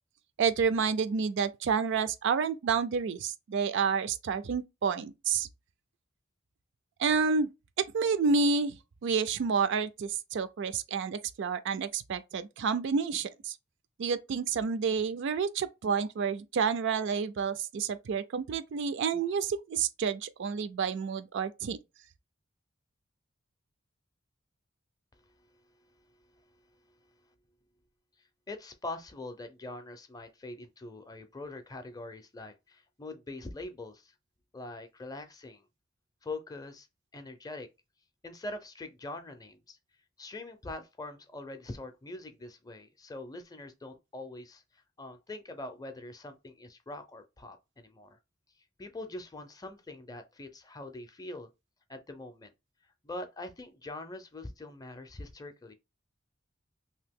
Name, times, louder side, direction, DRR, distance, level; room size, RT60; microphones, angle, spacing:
voice 1, 0.4-5.5 7.0-7.5 7.9-8.7 9.0-13.6 14.0-21.8, right 5 dB, 65° right, 0.4 m, -29 dB
voice 2, 28.5-34.1 34.5-35.6 36.2-36.9 37.1-37.7 38.2-39.8 40.2-48.2 48.8-51.5 51.9-52.5 53.0-55.7, left 2 dB, 20° left, 0.5 m, -43 dB
2.8 x 2.6 x 3.5 m
head